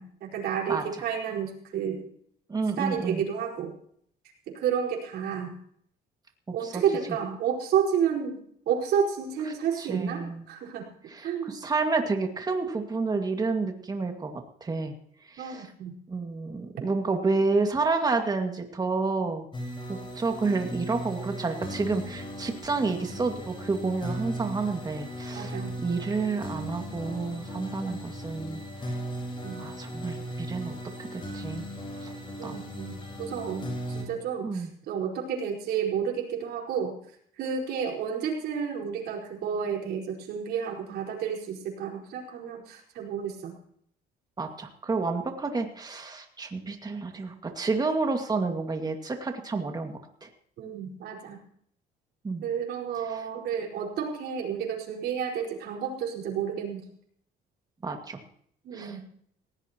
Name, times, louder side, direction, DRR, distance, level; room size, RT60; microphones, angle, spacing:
voice 1, 0.0-2.0 2.8-3.7 4.5-5.5 6.5-8.4 8.6-10.8 11.2-11.6 15.4-15.9 25.3-25.8 29.4-29.7 32.4-36.9 37.4-43.5 50.6-51.4 52.4-56.9 58.6-59.0, right 7 dB, 75° right, -1 dB, 4.9 m, -31 dB
voice 2, 2.5-3.2 6.6-6.8 9.8-10.5 11.1-14.9 15.3-15.7 16.1-19.4 19.9-29.0 29.6-31.7 32.0-32.1 32.4-32.6 34.4-34.7 44.4-50.3 52.2-52.4 53.1-53.2 57.8-58.2 58.7-59.0, right 3 dB, 25° right, 4 dB, 2.1 m, -30 dB
sound 1, 19.5-34.0, equal, 30° left, 4.5 m, -37 dB
19.0 x 17.0 x 3.0 m, 0.65 s
cardioid pair, 110°, 17 cm